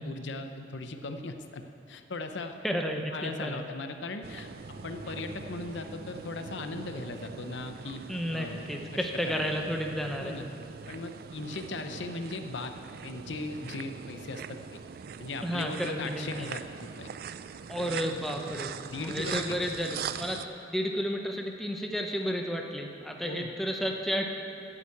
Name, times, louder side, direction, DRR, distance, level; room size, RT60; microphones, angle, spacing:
voice 1, 0.0-1.6 1.9-2.6 3.1-8.0 8.3-9.6 10.2-10.5 10.9-12.7 13.0-14.8 15.2-17.1 17.7-18.0 18.9-19.4 23.2-23.5, left 3 dB, 70° left, 7 dB, 0.7 m, -38 dB
voice 2, 2.6-3.6 8.1-10.4 15.4-16.5 17.7-18.7 19.0-24.3, equal, ahead, 2 dB, 0.7 m, -32 dB
sound 1, 4.2-20.5, right 7 dB, 50° right, 0.3 m, -42 dB
Bowed string instrument, 4.4-9.6, equal, 35° right, 2.8 m, -51 dB
9.2 x 7.4 x 8.4 m, 2.5 s
head